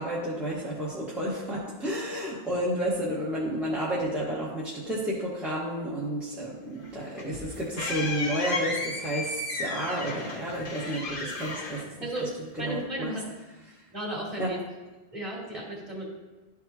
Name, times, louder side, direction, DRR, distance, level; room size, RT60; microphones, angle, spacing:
voice 1, 0.0-11.9 12.6-13.1 14.4-14.5, right 1 dB, ahead, -8 dB, 1.2 m, -31 dB
sound 1, 6.8-12.6, left 2 dB, 55° left, 1.1 m, -34 dB
voice 2, 12.6-13.2 13.9-14.6 15.1-16.0, right 1 dB, 30° right, -4 dB, 2.9 m, -34 dB
12.5 x 4.7 x 2.8 m, 1.2 s
omnidirectional pair, 1.1 m